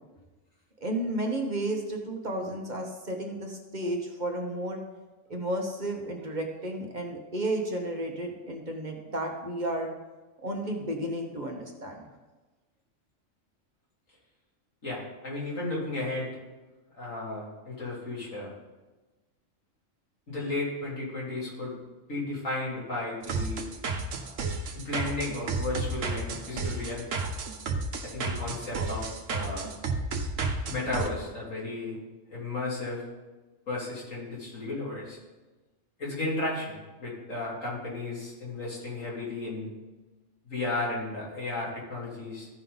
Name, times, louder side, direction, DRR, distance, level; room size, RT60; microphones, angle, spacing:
voice 1, 0.8-4.8 5.3-9.9 10.4-12.0, right 1 dB, 40° right, 2 dB, 1.2 m, -32 dB
voice 2, 14.8-16.3 16.9-18.5 20.3-21.8 22.1-23.7 24.8-27.2 28.0-29.7 30.7-32.0 32.3-33.0 33.7-35.2 36.0-39.7 40.4-42.5, left 2 dB, 90° left, -6 dB, 3.4 m, -34 dB
sound 1, 23.2-31.1, right 3 dB, 80° right, 1.3 m, -32 dB
14.5 x 5.4 x 3.9 m, 1.2 s
omnidirectional pair, 1.3 m